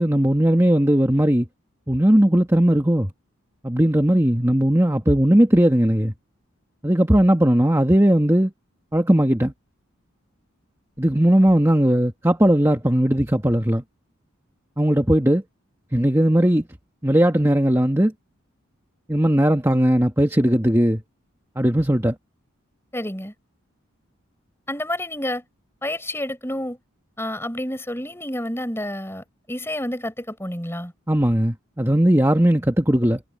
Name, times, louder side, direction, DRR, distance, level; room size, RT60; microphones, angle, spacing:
voice 1, 0.0-1.5 1.9-3.1 3.6-6.1 6.8-8.5 8.9-9.5 11.0-13.8 14.8-15.4 15.9-16.6 17.0-18.1 19.1-21.0 21.5-22.1 31.1-33.2, right 1 dB, 10° right, 1.5 m, -18 dB
voice 2, 22.9-23.3 24.7-25.4 25.8-26.8 27.2-30.9, left 1 dB, 10° left, 5.3 m, -29 dB
head